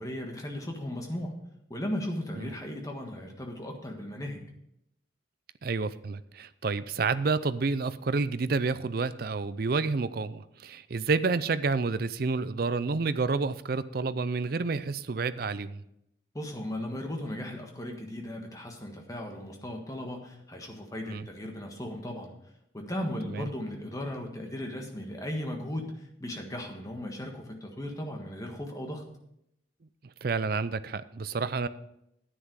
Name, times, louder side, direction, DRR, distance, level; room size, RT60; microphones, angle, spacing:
voice 1, 0.0-1.4 1.7-4.5 16.3-22.3 22.7-29.0, left 1 dB, 15° left, 2 dB, 1.5 m, -36 dB
voice 2, 5.6-15.8 21.1-21.3 23.3-23.5 30.2-31.7, right 4 dB, 50° right, 14 dB, 0.5 m, -29 dB
10.0 x 9.6 x 4.7 m, 0.79 s
head